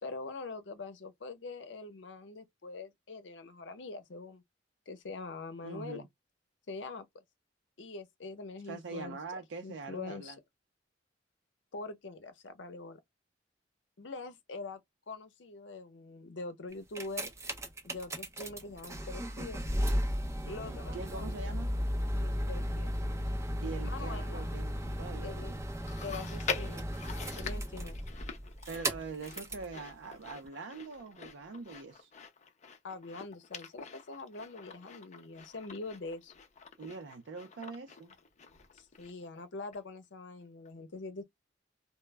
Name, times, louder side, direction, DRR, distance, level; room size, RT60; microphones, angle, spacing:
voice 1, 0.0-4.4 4.9-6.1 6.7-7.2 7.8-9.2 9.6-10.3 11.7-13.0 14.0-14.8 15.1-17.3 17.8-19.7 20.5-21.3 22.1-23.0 23.8-24.5 25.2-25.6 26.0-26.9 27.4-28.0 32.8-36.3 38.7-41.2, left 3 dB, 80° left, 0.7 m, -44 dB
voice 2, 5.6-6.1 8.6-10.4 20.4-21.7 23.6-25.6 28.7-32.1 36.8-38.1, right 4 dB, 80° right, 0.5 m, -43 dB
sound 1, 16.7-29.7 30.4-30.5, equal, 15° right, 0.5 m, -35 dB
Chewing mastication, 25.9-39.4 39.7-39.8 40.6-40.7, left 5 dB, 40° left, 0.5 m, -45 dB
2.1 x 2.0 x 3.2 m
head